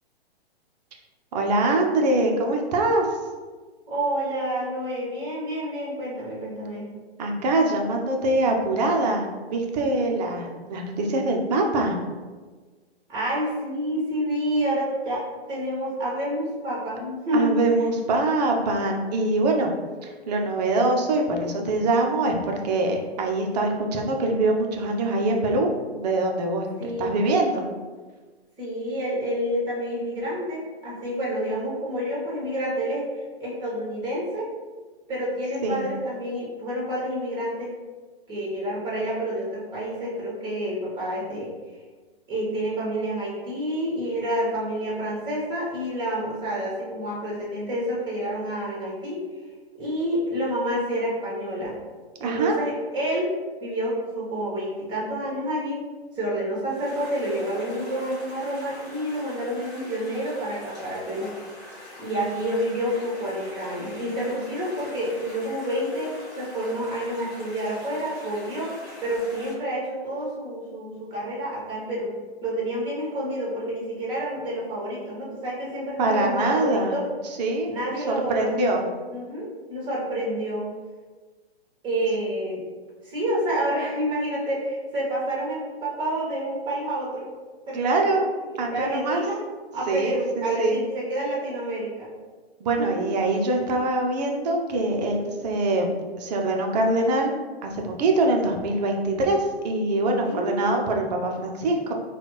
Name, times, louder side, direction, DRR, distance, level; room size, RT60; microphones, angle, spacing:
voice 1, 1.3-3.2 7.2-12.0 17.3-19.7 20.0-27.7 35.6-35.8 52.2-52.6 76.0-76.9 77.4-77.7 78.1-78.8 87.7-88.3 88.6-89.2 89.9-90.8 92.6-97.3 97.6-101.9, right 2 dB, 40° right, 1 dB, 0.7 m, -24 dB
voice 2, 3.9-6.9 13.1-17.6 26.8-27.1 28.6-34.5 35.1-37.7 38.3-41.5 42.3-49.2 49.8-51.7 52.2-53.3 53.6-55.8 56.1-61.3 62.0-68.7 69.0-72.1 72.4-77.1 77.7-78.8 79.1-80.7 81.8-82.6 83.0-87.3 87.7-88.0 88.5-89.4 89.7-92.1 92.8-93.0 100.2-100.7, equal, 15° right, -5 dB, 1.3 m, -28 dB
sound 1, 56.6-69.5, left 1 dB, ahead, 0.3 m, -43 dB
4.1 x 2.4 x 3.1 m, 1.4 s
hypercardioid pair, 135°, 32 cm